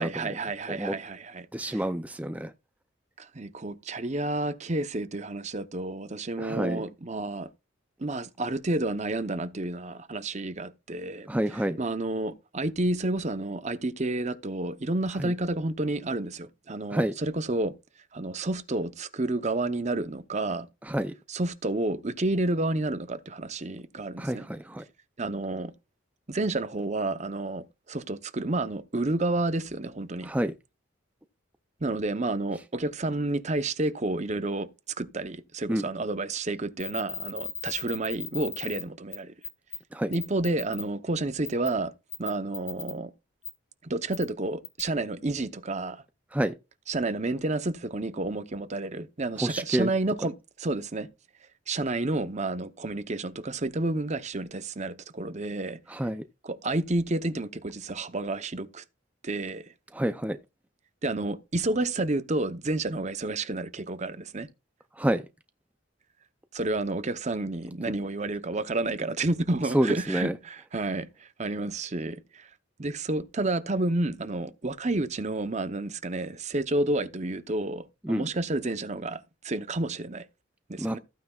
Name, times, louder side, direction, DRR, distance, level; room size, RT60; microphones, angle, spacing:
voice 1, 0.0-1.8 3.2-7.5 8.0-11.3 11.8-17.7 18.1-20.7 21.3-24.5 25.2-25.7 26.3-30.3 31.8-34.7 35.0-39.3 40.1-41.9 42.2-43.1 43.8-46.0 46.9-51.1 51.7-55.8 56.4-58.8 59.2-59.6 61.0-64.5 66.5-72.5 72.8-80.3 80.7-81.0, right 2 dB, 35° right, 0.8 m, -30 dB
voice 2, 1.5-2.5 6.4-6.8 11.3-11.8 15.2-15.3 16.9-17.1 20.9-21.1 24.2-24.8 30.2-30.5 35.7-35.8 39.9-40.1 46.3-46.5 49.4-49.9 55.9-56.2 59.9-60.4 65.0-65.2 69.7-70.3 78.0-78.3 80.8-81.0, right 1 dB, 5° right, 0.5 m, -28 dB
sound 1, 36.8-38.8 39.1-39.2 39.4-39.8 40.1-40.8 41.5-41.7 42.1-42.9 43.4-43.5 44.1-44.2 44.6-44.8, left 6 dB, 15° left, 1.4 m, -36 dB
14.5 x 9.2 x 2.4 m
head